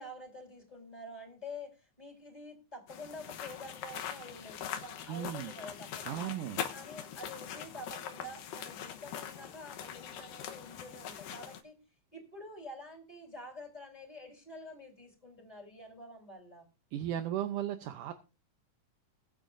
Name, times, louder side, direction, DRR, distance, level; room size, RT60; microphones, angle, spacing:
voice 1, 0.0-6.4 6.7-11.7 12.1-16.7, left 1 dB, 10° left, 1 dB, 3.8 m, -48 dB
sound 1, 2.9-11.6, left 9 dB, 85° left, 2.8 m, -42 dB
voice 2, 5.1-5.5 6.1-6.6 16.9-18.1, right 11 dB, 75° right, 8 dB, 2.1 m, -36 dB
22.0 x 8.7 x 2.6 m, 0.31 s
omnidirectional pair, 3.9 m